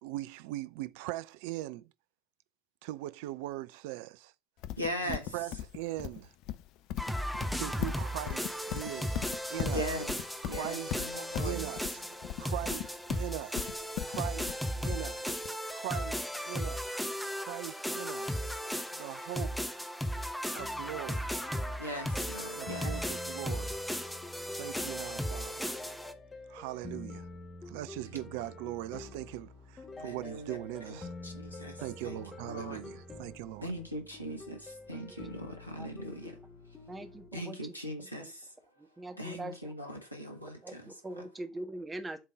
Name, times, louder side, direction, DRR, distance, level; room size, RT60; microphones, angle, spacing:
voice 1, 0.0-1.9 2.8-4.3 5.0-6.3 7.5-9.9 10.4-11.0 11.4-13.7 14.0-15.4 15.7-17.0 17.4-18.4 18.9-19.6 20.5-21.3 22.6-23.8 24.6-25.7 26.5-27.3 27.6-31.1 31.8-33.7, right 16 dB, 60° right, 0.4 m, -40 dB
Livestock farm animals working animals, 4.6-15.5, left 12 dB, 55° left, 0.5 m, -39 dB
voice 2, 4.8-5.3 9.7-10.2 10.4-11.6 21.8-23.0 23.4-23.6 30.0-30.6 30.9-31.0 31.2-32.8 33.6-36.4 37.3-38.5 39.2-40.9 41.2-41.3, equal, 90° left, 1.3 m, -40 dB
sound 1, 7.0-26.1, equal, ahead, 1.2 m, -36 dB
sound 2, 20.6-37.3, left 2 dB, 25° left, 1.6 m, -47 dB
voice 3, 36.9-37.7 38.1-38.3 38.8-39.7 40.6-42.2, right 2 dB, 20° right, 1.5 m, -42 dB
7.4 x 3.7 x 6.3 m
figure-of-eight pair, 65°, 0 cm